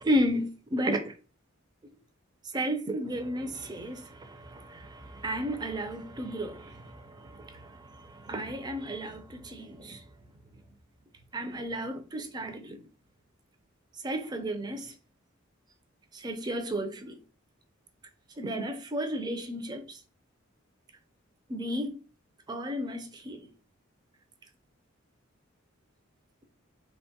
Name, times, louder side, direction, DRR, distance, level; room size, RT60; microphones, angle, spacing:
voice 1, 0.0-1.1 2.5-10.0 11.3-12.8 14.0-14.9 16.1-17.2 18.4-20.0 21.5-22.0 22.5-23.5, equal, 20° right, 0.3 m, -33 dB
2.9 x 2.1 x 2.7 m
head